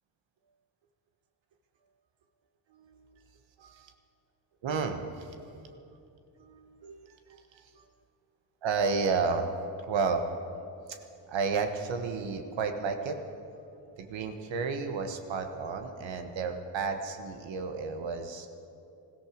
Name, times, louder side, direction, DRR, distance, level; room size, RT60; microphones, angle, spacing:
voice 1, 2.7-3.0 3.6-3.9 4.6-5.3 6.4-7.2 7.5-7.7 8.6-9.5 9.9-10.4 10.9-11.0 11.3-13.2 14.0-18.5, right 4 dB, 70° right, 6 dB, 1.4 m, -32 dB
20.0 x 14.0 x 5.2 m, 2.6 s
supercardioid pair, 60°, 47 cm